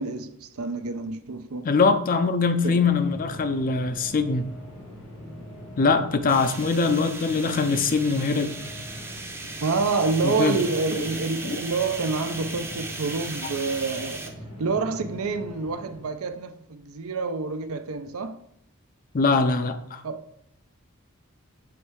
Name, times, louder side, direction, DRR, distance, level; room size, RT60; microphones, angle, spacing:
voice 1, 0.0-1.7 2.6-2.8 9.6-14.3 14.6-18.4 20.0-20.2, right 4 dB, 70° right, 0.5 m, -28 dB
voice 2, 1.7-4.5 5.8-8.6 10.2-10.6 11.4-11.6 19.1-20.0, left 4 dB, 40° left, 0.5 m, -22 dB
sound 1, 2.4-16.2, equal, 90° left, 1.6 m, -43 dB
sound 2, 6.3-14.3, right 3 dB, 10° right, 0.6 m, -37 dB
7.0 x 3.2 x 4.6 m
head